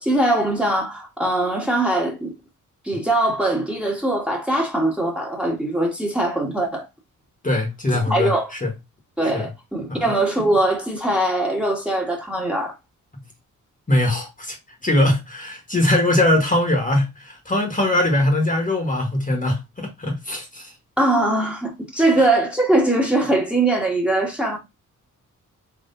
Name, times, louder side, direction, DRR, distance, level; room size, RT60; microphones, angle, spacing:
voice 1, 0.0-2.3 2.8-6.9 8.1-8.5 9.2-12.7 21.0-24.6, right 1 dB, 5° right, 1.2 m, -21 dB
voice 2, 7.4-8.7 9.3-9.5 9.9-10.0 13.9-14.6 14.8-20.7, left 1 dB, 25° left, 1.3 m, -21 dB
3.8 x 3.1 x 2.6 m
cardioid pair, 70°, 32 cm